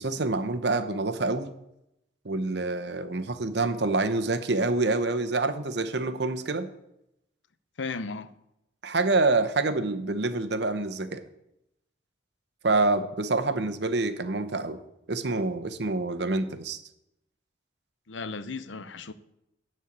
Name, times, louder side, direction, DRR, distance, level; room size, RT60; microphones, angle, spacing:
voice 1, 0.0-1.5 2.2-6.7 8.8-11.2 12.6-14.8 15.1-16.8, right 3 dB, 65° right, 0.9 m, -27 dB
voice 2, 7.8-8.3 18.1-19.1, left 4 dB, 85° left, 0.7 m, -35 dB
12.5 x 4.5 x 8.6 m
head